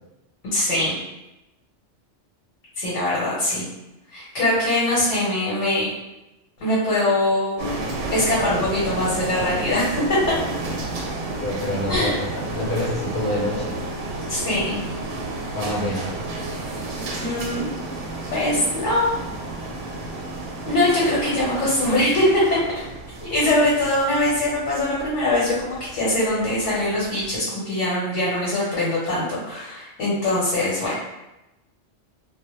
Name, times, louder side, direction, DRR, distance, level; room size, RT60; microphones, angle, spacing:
voice 1, 0.5-1.0 2.8-3.6 4.1-5.9 6.6-7.6 8.1-10.0 11.9-12.2 14.3-14.8 17.0-17.7 18.3-19.2 20.6-22.6 23.2-31.0, left 1 dB, 85° left, -7 dB, 1.1 m, -22 dB
sound 1, 7.6-27.3, right 2 dB, 85° right, 0.9 m, -32 dB
voice 2, 11.4-13.7 15.5-16.1, left 1 dB, 50° left, -5 dB, 0.7 m, -26 dB
2.1 x 2.1 x 3.0 m, 0.97 s
omnidirectional pair, 1.2 m